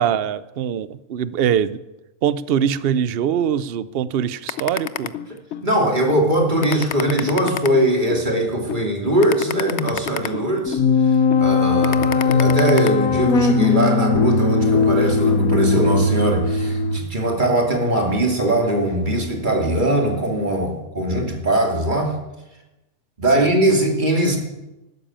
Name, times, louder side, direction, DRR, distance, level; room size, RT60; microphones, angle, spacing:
voice 1, 0.0-1.8 2.2-5.1 23.3-23.5, right 9 dB, 55° right, 16 dB, 0.7 m, -22 dB
sound 1, 4.5-5.7 6.1-6.2 6.6-8.3 8.7-8.8 9.2-10.9 11.3-11.5 11.8-12.9, left 10 dB, 60° left, 0.9 m, -28 dB
voice 2, 5.6-10.8 11.4-22.1 23.2-24.4, right 1 dB, 35° right, 1 dB, 2.8 m, -21 dB
sound 2, 10.7-17.0, left 4 dB, 85° left, 1.7 m, -18 dB
12.5 x 12.5 x 8.8 m, 0.99 s
omnidirectional pair, 1.5 m